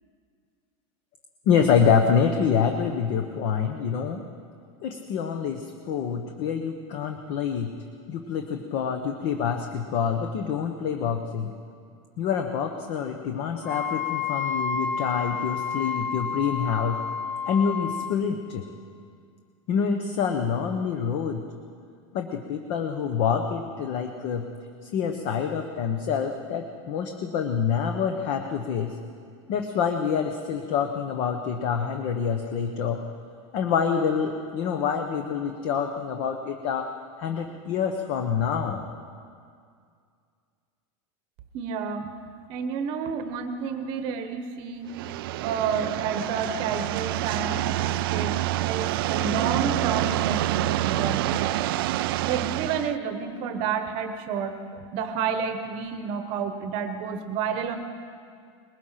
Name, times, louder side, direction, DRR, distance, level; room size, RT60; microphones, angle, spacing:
voice 1, 1.5-4.2 4.8-7.7 8.1-11.5 12.2-17.0 17.5-18.6 19.7-21.4 22.1-24.4 24.8-28.9 29.5-33.0 33.5-36.9 37.2-38.8, left 7 dB, 35° left, 5 dB, 1.1 m, -26 dB
Wind instrument woodwind instrument, 13.6-18.2, left 6 dB, 5° left, 0.5 m, -30 dB
voice 2, 41.5-42.1 42.5-44.9 45.4-48.3 48.6-51.6 52.2-57.8, right 6 dB, 35° right, 8 dB, 1.1 m, -30 dB
sound 1, 44.9-52.9, right 15 dB, 50° right, 0.4 m, -27 dB
22.0 x 21.0 x 5.8 m, 2.3 s
supercardioid pair, 180°, 16 cm